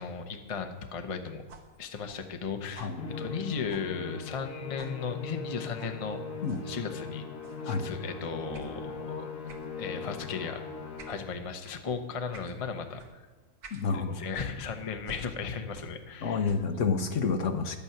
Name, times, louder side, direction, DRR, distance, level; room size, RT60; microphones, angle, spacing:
voice 1, 0.0-1.4 1.8-2.9 3.2-6.2 6.6-7.2 7.6-9.3 9.8-10.7 11.1-13.2 13.9-16.5, left 5 dB, 30° left, 6 dB, 0.7 m, -36 dB
sound 1, 1.5-4.5 4.8-5.0 5.8-6.0 6.4-6.7 7.4-7.7 8.5-8.7 9.5-9.7 10.2-10.4 11.0-11.2 11.6-11.8 12.3-12.6 13.0-13.1 13.6-13.9 14.3-16.1 16.4-16.8, right 3 dB, 80° right, 1.6 m, -51 dB
Musical instrument, 3.0-11.4, left 5 dB, 90° left, 1.7 m, -40 dB
voice 2, 13.7-14.2 16.2-17.8, left 5 dB, 60° left, 7 dB, 1.1 m, -29 dB
11.0 x 8.8 x 5.8 m, 1.4 s
omnidirectional pair, 1.6 m